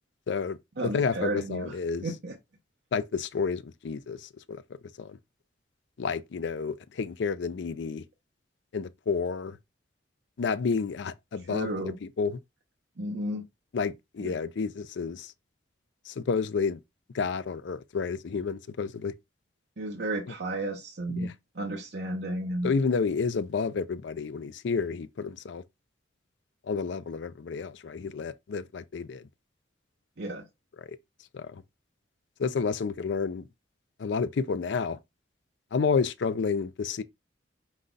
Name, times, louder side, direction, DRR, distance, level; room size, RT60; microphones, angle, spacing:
voice 1, 0.3-2.1 2.9-4.6 5.0-5.2 6.0-8.0 8.7-9.6 10.4-12.4 13.7-15.3 16.1-16.8 17.1-19.2 21.2-21.3 22.6-25.6 26.6-29.3 30.9-31.0 31.3-31.6 32.4-33.5 34.0-35.0 35.7-37.0, left 5 dB, 70° left, 0.4 m, -30 dB
voice 2, 0.8-1.7 2.0-2.3 11.5-12.0 13.0-13.4 14.2-14.3 19.8-22.7 30.2-30.4, right 1 dB, 60° right, 0.7 m, -33 dB
5.2 x 2.3 x 3.8 m
head